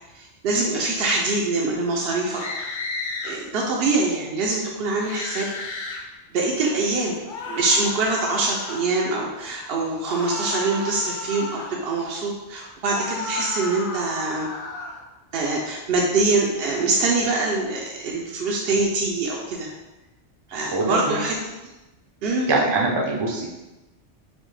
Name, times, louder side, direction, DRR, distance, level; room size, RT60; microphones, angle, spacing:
voice 1, 0.1-2.4 3.2-5.5 6.3-7.2 7.5-14.5 15.3-19.7 20.5-21.3 22.2-22.5, right 3 dB, 65° right, -2 dB, 0.7 m, -24 dB
sound 1, 2.3-3.3 5.0-6.0 7.3-8.9 10.0-11.7 12.8-15.0, left 3 dB, 50° left, 0.8 m, -33 dB
voice 2, 20.7-21.2 22.5-23.5, right 2 dB, 35° right, -1 dB, 0.4 m, -23 dB
5.2 x 2.1 x 3.1 m, 1.1 s
omnidirectional pair, 1.2 m